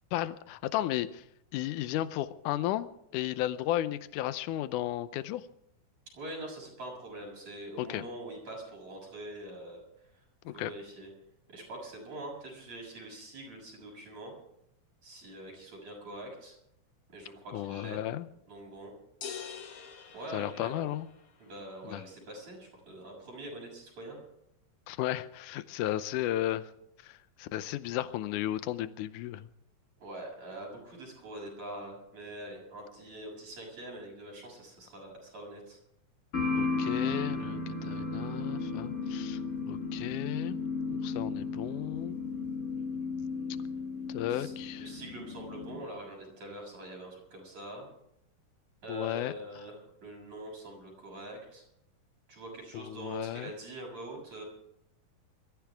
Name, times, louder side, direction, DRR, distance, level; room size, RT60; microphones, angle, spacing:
voice 1, 0.1-1.2 1.5-5.5 7.8-8.1 10.5-10.7 17.5-18.3 20.3-21.1 21.8-22.0 24.9-26.7 27.0-29.5 36.6-40.6 41.0-42.2 44.1-44.9 48.9-49.3 52.7-53.5, left 13 dB, 80° left, 13 dB, 2.2 m, -34 dB
voice 2, 6.1-9.8 10.1-10.2 10.5-11.1 11.5-14.3 15.0-16.6 17.1-18.0 18.5-18.9 20.1-20.7 21.4-24.2 30.0-35.8 44.3-47.9 48.8-49.7 50.0-51.6 52.3-54.4, right 1 dB, 55° right, -2 dB, 8.2 m, -44 dB
sound 1, 19.2-21.3, left 7 dB, 50° left, 2.0 m, -44 dB
sound 2, 36.3-45.8, left 4 dB, 30° left, 2.3 m, -34 dB
23.5 x 14.0 x 3.5 m, 0.77 s
omnidirectional pair, 3.7 m